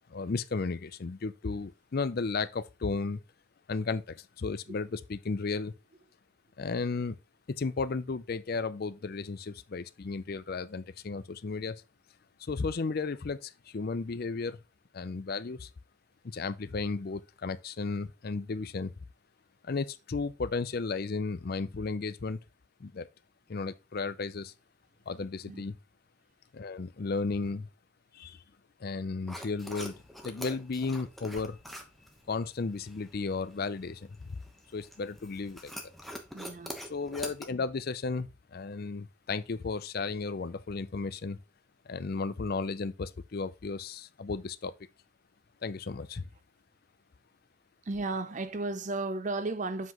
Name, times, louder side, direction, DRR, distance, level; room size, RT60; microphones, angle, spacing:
voice 1, 0.1-3.2 3.7-5.7 6.6-7.2 7.5-11.8 12.4-14.6 14.9-15.7 16.2-18.9 19.6-22.4 22.8-23.1 23.5-24.5 25.1-25.8 26.5-27.7 28.1-28.4 28.8-31.6 32.3-34.4 34.7-35.7 36.9-41.4 41.9-44.7 45.6-46.3, left 4 dB, 45° left, 0.5 m, -34 dB
sound 1, 29.3-37.5, equal, ahead, 1.0 m, -46 dB
voice 2, 36.3-36.7 47.8-49.9, right 3 dB, 35° right, 0.6 m, -34 dB
7.4 x 5.9 x 3.0 m
head